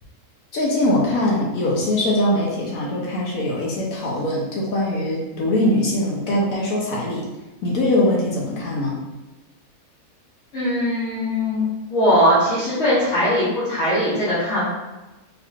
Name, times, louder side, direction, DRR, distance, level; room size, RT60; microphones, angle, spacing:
voice 1, 0.5-7.2 7.6-8.9, left 1 dB, 75° left, -3 dB, 1.1 m, -22 dB
voice 2, 10.5-14.7, equal, 55° left, -13 dB, 1.6 m, -20 dB
4.0 x 3.0 x 2.4 m, 1.1 s
omnidirectional pair, 1.5 m